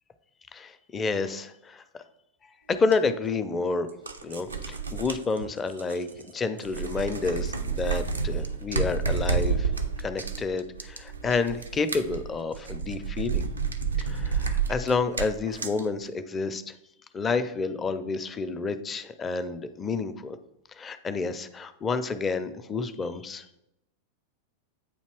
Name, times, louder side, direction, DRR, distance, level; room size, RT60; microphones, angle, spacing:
voice 1, 0.5-1.8 2.7-3.9 4.2-9.7 10.0-13.5 14.0-16.7 17.1-20.4 20.7-23.5, left 4 dB, 20° left, 10 dB, 0.5 m, -29 dB
sound 1, 2.9-3.0 3.9-6.3 6.6-15.8, right 5 dB, 75° right, 0.5 m, -30 dB
8.4 x 2.8 x 4.5 m, 0.85 s
figure-of-eight pair, 90°, 0 cm